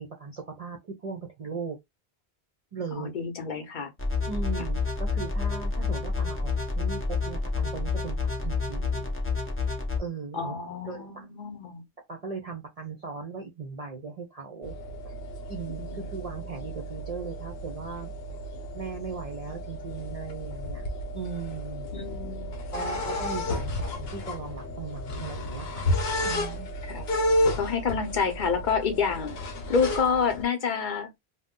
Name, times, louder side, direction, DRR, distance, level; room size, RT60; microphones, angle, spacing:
voice 1, 0.0-1.8 2.7-3.2 4.3-7.0 7.2-9.1 10.0-10.6 10.9-11.3 12.1-14.7 15.0-15.2 15.5-18.4 18.7-20.8 21.1-21.9 22.7-26.0 26.2-26.7, right 5 dB, 45° right, 0.6 m, -38 dB
voice 2, 2.9-3.9 10.3-11.8 15.7-16.0 21.9-22.5 22.8-23.0 26.9-27.0 27.6-29.4 29.7-31.1, left 5 dB, 50° left, 0.8 m, -28 dB
sound 1, 4.0-10.0, left 4 dB, 20° left, 0.4 m, -29 dB
sound 2, 14.6-30.4, left 1 dB, 70° left, 1.0 m, -32 dB
2.6 x 2.2 x 3.6 m
omnidirectional pair, 1.1 m